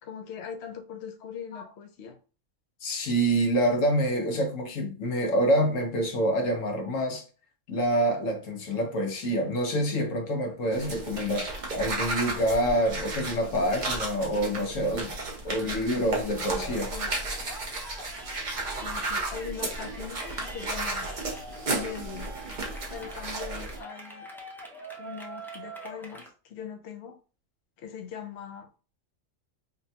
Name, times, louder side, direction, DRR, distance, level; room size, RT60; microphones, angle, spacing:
voice 1, 0.0-2.2 16.9-17.1 18.8-21.1 21.7-22.4 22.9-24.3 25.0-27.2 27.8-28.8, left 7 dB, 65° left, 0.8 m, -41 dB
voice 2, 2.8-7.2 7.7-15.1 15.4-16.9, right 1 dB, 85° left, 1.3 m, -27 dB
sound 1, 10.7-23.8, right 2 dB, 40° right, 0.9 m, -34 dB
Yell, 16.6-26.3, right 2 dB, 5° left, 0.5 m, -44 dB
5.0 x 2.2 x 2.7 m
omnidirectional pair, 1.3 m